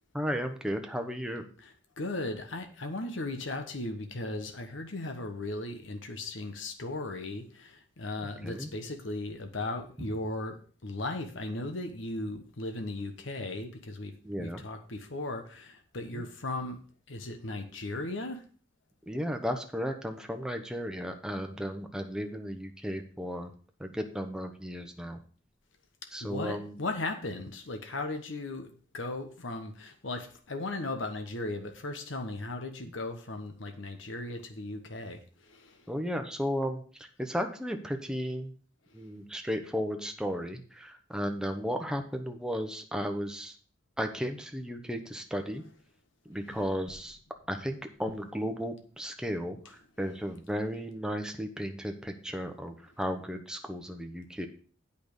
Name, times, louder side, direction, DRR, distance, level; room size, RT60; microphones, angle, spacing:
voice 1, 0.1-1.5 8.2-8.7 14.2-14.6 16.1-16.2 19.1-23.5 23.8-25.2 26.1-26.8 32.8-32.9 35.9-38.5 38.9-43.5 44.0-45.6 46.3-47.2 47.5-54.5, equal, 5° right, 5 dB, 1.0 m, -34 dB
voice 2, 1.6-14.1 14.4-16.8 17.1-18.4 26.2-35.8 46.5-46.6, left 2 dB, 75° left, 6 dB, 1.1 m, -37 dB
8.6 x 5.5 x 6.6 m, 0.42 s
head